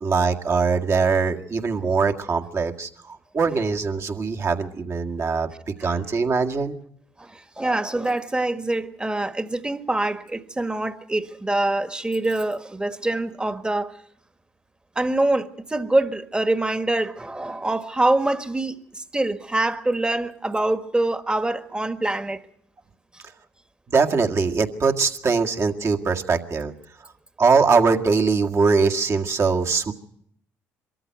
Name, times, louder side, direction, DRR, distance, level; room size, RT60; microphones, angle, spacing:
voice 1, 0.0-5.5 5.8-6.8 23.9-26.7 27.4-29.9, right 4 dB, 45° right, 1.9 m, -22 dB
voice 2, 7.2-14.0 14.9-22.4 23.1-23.2, right 2 dB, 15° right, 1.5 m, -25 dB
23.0 x 14.0 x 9.4 m
hypercardioid pair, 60°, 7 cm